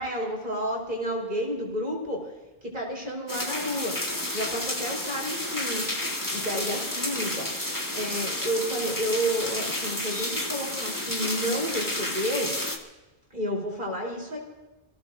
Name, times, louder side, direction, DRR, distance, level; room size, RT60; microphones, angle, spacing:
voice 1, 0.0-2.3 2.6-4.0 4.3-5.8 6.3-7.5 7.9-12.5 13.3-14.4, equal, 50° right, -1 dB, 4.8 m, -30 dB
sound 1, 3.3-12.8, left 1 dB, 20° left, 2.0 m, -31 dB
27.0 x 17.5 x 2.7 m, 1.1 s
omnidirectional pair, 1.0 m